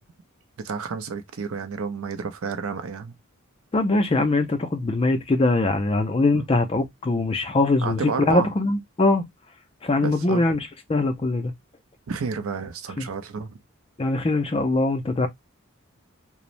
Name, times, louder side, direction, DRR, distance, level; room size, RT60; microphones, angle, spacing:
voice 1, 0.6-3.1 6.3-6.4 7.8-8.5 10.0-10.5 12.1-13.6, right 5 dB, 75° right, 0.5 m, -30 dB
voice 2, 3.7-9.2 9.8-11.5 13.0-13.1 14.0-15.3, left 2 dB, 25° left, 0.4 m, -22 dB
3.0 x 2.0 x 2.5 m
head